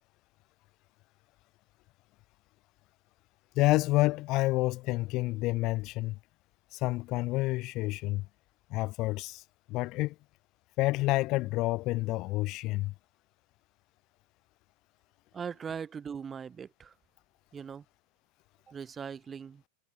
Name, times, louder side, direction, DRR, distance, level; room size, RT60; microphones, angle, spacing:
voice 1, 3.6-6.2 6.7-8.2 8.7-9.4 9.7-10.1 10.8-12.9, left 20 dB, 40° left, 0.6 m, -28 dB
voice 2, 15.3-16.9 17.5-17.8 18.7-19.6, right 6 dB, 20° right, 1.8 m, -40 dB
figure-of-eight pair, 90°, 0 cm